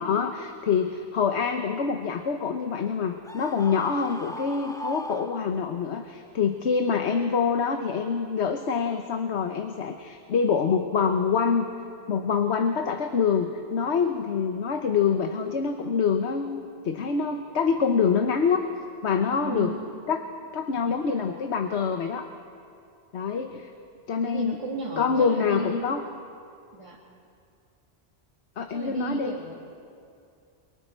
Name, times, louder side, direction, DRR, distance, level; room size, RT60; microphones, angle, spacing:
voice 1, 0.0-11.7 12.1-18.6 19.0-19.7 20.1-20.3 20.5-22.3 23.1-23.7 24.1-24.6 25.0-26.0 28.6-29.4, left 6 dB, 80° left, 5 dB, 1.3 m, -25 dB
Screaming, 3.2-5.9, left 1 dB, 5° left, 0.5 m, -38 dB
voice 2, 19.3-19.8 24.2-25.9 26.7-27.0 28.7-29.5, right 3 dB, 30° right, -4 dB, 2.2 m, -34 dB
29.0 x 23.5 x 4.5 m, 2.4 s
omnidirectional pair, 1.1 m